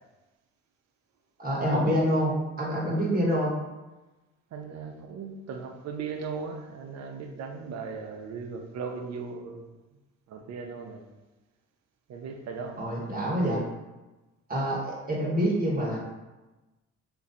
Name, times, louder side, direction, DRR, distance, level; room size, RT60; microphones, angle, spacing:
voice 1, 1.4-3.5 12.8-13.6 14.5-16.0, equal, 30° right, -3 dB, 1.1 m, -26 dB
voice 2, 4.5-9.7 10.3-11.0 12.1-12.8, right 5 dB, 60° right, 4 dB, 0.6 m, -37 dB
3.0 x 2.6 x 3.8 m, 1.1 s
cardioid pair, 90°, 30 cm